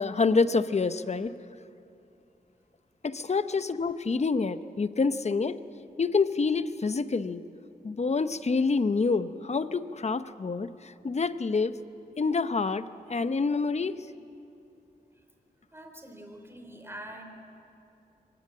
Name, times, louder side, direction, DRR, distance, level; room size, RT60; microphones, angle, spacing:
voice 1, 0.0-1.3 3.0-5.6 6.0-7.4 7.8-11.8 12.2-14.0, left 4 dB, 45° left, 12 dB, 0.8 m, -27 dB
voice 2, 15.7-17.2, right 1 dB, 15° right, 4 dB, 3.5 m, -44 dB
23.5 x 19.0 x 7.6 m, 2.7 s
wide cardioid pair, 75°, 16 cm